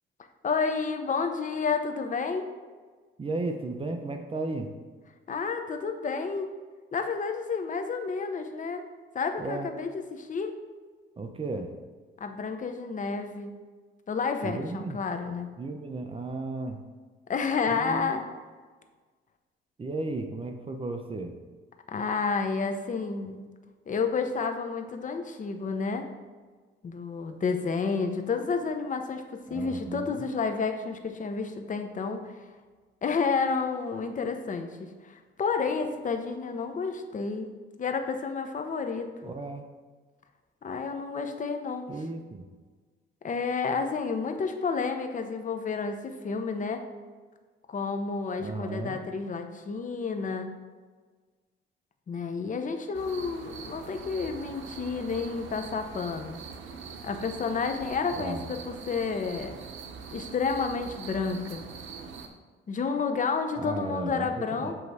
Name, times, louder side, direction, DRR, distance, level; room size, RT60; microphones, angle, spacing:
voice 1, 0.4-2.5 5.3-6.5 6.9-8.8 9.1-10.6 12.2-13.5 14.1-15.5 17.3-18.3 21.9-23.4 23.9-26.1 26.8-32.4 33.0-37.5 37.8-39.3 40.6-41.9 43.2-46.8 47.7-50.5 52.1-56.4 57.0-59.6 60.1-61.6 62.7-64.7, left 5 dB, 40° left, 6 dB, 0.8 m, -30 dB
voice 2, 3.2-4.7 9.4-9.7 11.2-11.7 14.4-15.0 15.6-16.8 17.7-18.1 19.8-21.3 29.5-30.3 39.2-39.7 41.9-42.4 48.4-49.0 58.1-58.4 63.6-64.7, right 2 dB, 25° right, 5 dB, 0.7 m, -34 dB
sound 1, 52.9-62.3, right 5 dB, 75° right, 0.8 m, -43 dB
7.7 x 3.2 x 4.7 m, 1.4 s
cardioid pair, 90°, 20 cm